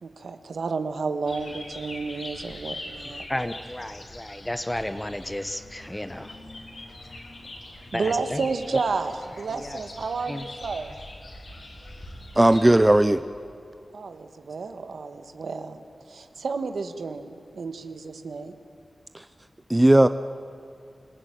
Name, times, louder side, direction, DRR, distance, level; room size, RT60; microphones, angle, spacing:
voice 1, 0.0-3.3 7.9-10.9 13.9-18.5, right 4 dB, 80° right, 8 dB, 1.5 m, -31 dB
sound 1, 1.3-13.1, left 2 dB, 55° left, 4.1 m, -42 dB
voice 2, 3.3-6.3 7.9-8.4 9.6-9.8 10.3-10.4, left 1 dB, 10° left, 11 dB, 1.1 m, -32 dB
voice 3, 12.4-13.2 19.1-19.2 19.7-20.1, right 1 dB, 15° right, 11 dB, 0.6 m, -16 dB
26.0 x 17.5 x 9.2 m, 2.5 s
wide cardioid pair, 90°, 0 cm